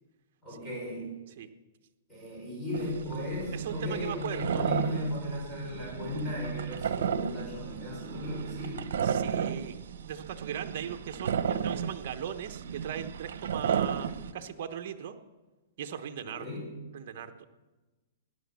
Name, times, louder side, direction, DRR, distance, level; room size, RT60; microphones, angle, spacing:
voice 1, 0.4-1.2 2.1-8.8 16.2-16.7, left 1 dB, 5° left, -5 dB, 5.6 m, -36 dB
sound 1, 2.7-14.3, right 7 dB, 70° right, 1.1 m, -34 dB
voice 2, 3.5-4.7 9.0-9.8 10.0-15.2 15.8-16.4 16.9-17.5, right 9 dB, 50° right, 6 dB, 1.1 m, -38 dB
18.0 x 10.5 x 7.0 m, 1.2 s
hypercardioid pair, 160°, 0 cm